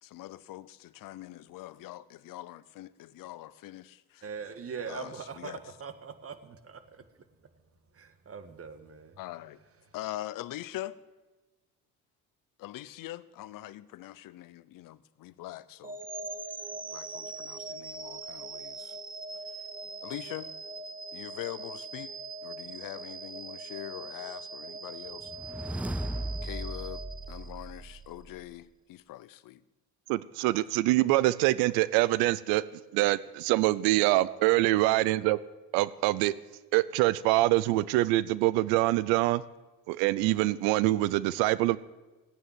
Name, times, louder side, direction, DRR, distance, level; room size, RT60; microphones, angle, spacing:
voice 1, 0.0-4.2 4.9-5.1 5.4-5.6 9.2-9.6 9.9-11.0 12.6-16.0 16.9-19.0 20.0-20.5 21.1-22.1 22.4-25.3 25.7-26.0 26.4-27.0 27.3-29.6, left 15 dB, 70° left, 0.8 m, -43 dB
voice 2, 4.2-7.0 7.9-9.2 9.8-10.0, right 6 dB, 40° right, 1.9 m, -42 dB
sound 1, 15.8-27.9, right 3 dB, 25° right, 1.1 m, -41 dB
sound 2, 25.2-28.5, right 1 dB, 5° right, 0.5 m, -37 dB
voice 3, 30.1-32.6 32.9-35.4 35.7-36.3 36.7-39.4 39.9-41.8, right 17 dB, 90° right, 0.6 m, -25 dB
15.5 x 9.3 x 9.1 m
supercardioid pair, 75°, 35 cm